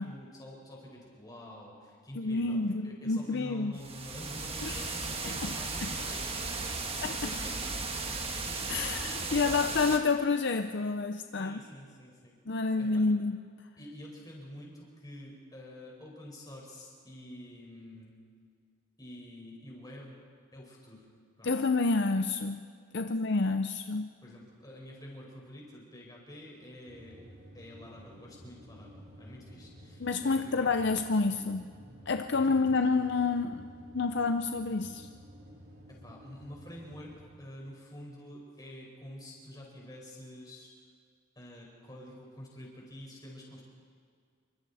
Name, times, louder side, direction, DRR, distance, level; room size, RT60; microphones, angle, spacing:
voice 1, 0.0-8.0 8.4-9.8 11.4-12.3 12.8-13.0 13.8-18.2 19.0-20.2 20.5-21.0 21.4-21.5 23.0-23.1 24.2-27.2 27.5-30.8 32.5-33.2 35.9-40.7 41.3-43.6, left 1 dB, 15° left, -2 dB, 4.8 m, -48 dB
voice 2, 2.2-3.7 4.6-4.8 5.4-5.5 5.8-5.9 7.0-7.2 8.7-11.6 12.5-13.4 21.4-22.6 22.9-24.1 30.0-31.7 32.1-33.7 33.9-35.1, left 3 dB, 50° left, 7 dB, 0.6 m, -29 dB
sound 1, 3.8-10.0, right 3 dB, 25° right, 1.5 m, -36 dB
sound 2, 26.9-37.2, equal, 50° right, 4.2 m, -52 dB
27.5 x 24.5 x 4.2 m, 2.1 s
head